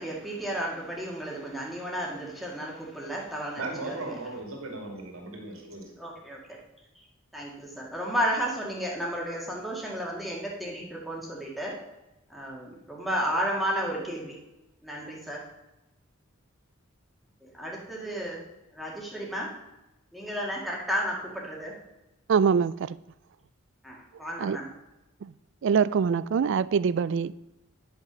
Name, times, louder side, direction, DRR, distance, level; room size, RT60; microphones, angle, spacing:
voice 1, 0.0-4.2 6.0-6.6 7.0-7.1 7.3-11.7 12.3-14.3 14.8-15.4 17.4-18.4 18.7-19.5 20.1-21.7 23.8-24.7, equal, ahead, 1.9 m, -33 dB
voice 2, 3.6-5.9, right 2 dB, 90° right, 2.4 m, -37 dB
voice 3, 22.3-23.0 24.4-24.6 25.2-25.3 25.6-27.3, right 6 dB, 60° right, 0.3 m, -24 dB
11.0 x 5.8 x 6.2 m
head